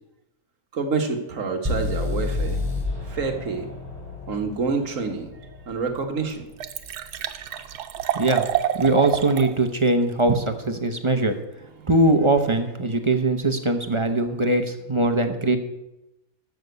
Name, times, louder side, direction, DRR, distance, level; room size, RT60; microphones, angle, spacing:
voice 1, 0.7-2.6 3.1-3.7 4.3-6.4 11.8-11.9, right 4 dB, 55° right, 5 dB, 1.6 m, -28 dB
sound 1, 1.6-5.6, left 3 dB, 5° right, 5.8 m, -29 dB
Liquid, 5.4-5.5 6.0-6.1 6.3-9.5 9.9-10.0, right 11 dB, 90° right, 1.3 m, -28 dB
voice 2, 8.1-8.5 8.8-11.3 11.9-15.6, right 2 dB, 25° right, 6 dB, 0.7 m, -21 dB
13.0 x 6.0 x 8.1 m, 0.93 s
omnidirectional pair, 1.7 m